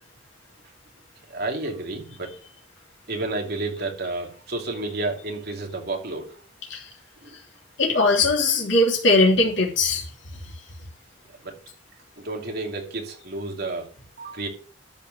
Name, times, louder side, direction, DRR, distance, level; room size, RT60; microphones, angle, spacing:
voice 1, 1.3-2.4 3.1-6.3 7.2-7.4 11.3-11.6 12.2-13.9 14.2-14.5, right 2 dB, 55° right, 1 dB, 2.6 m, -31 dB
voice 2, 7.8-10.0, left 2 dB, 65° left, -1 dB, 3.1 m, -20 dB
12.5 x 4.9 x 6.5 m, 0.42 s
head